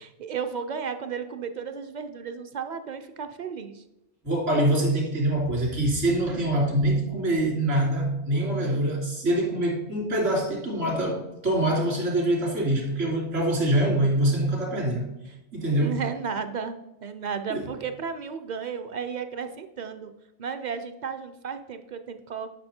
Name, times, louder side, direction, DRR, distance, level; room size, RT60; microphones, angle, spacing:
voice 1, 0.0-3.8 8.3-8.9 15.7-20.1 20.4-22.5, right 6 dB, 45° right, 9 dB, 0.7 m, -34 dB
voice 2, 4.2-15.1 15.5-16.0 17.5-17.6, right 1 dB, 70° right, -3 dB, 3.4 m, -24 dB
10.5 x 6.0 x 4.4 m, 0.96 s
omnidirectional pair, 1.3 m